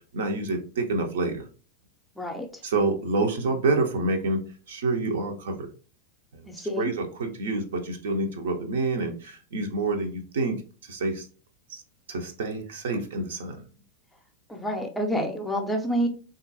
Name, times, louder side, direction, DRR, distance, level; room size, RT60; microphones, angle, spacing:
voice 1, 0.1-1.5 2.6-4.4 4.7-5.7 6.3-6.5 6.8-10.6 10.9-11.3 11.7-11.8 12.1-13.6, right 3 dB, 60° right, 5 dB, 0.6 m, -27 dB
voice 2, 2.2-2.6 6.5-6.9 14.5-16.1, equal, 5° left, 3 dB, 0.5 m, -28 dB
3.6 x 2.4 x 2.7 m, 0.38 s
figure-of-eight pair, 90°, 0 cm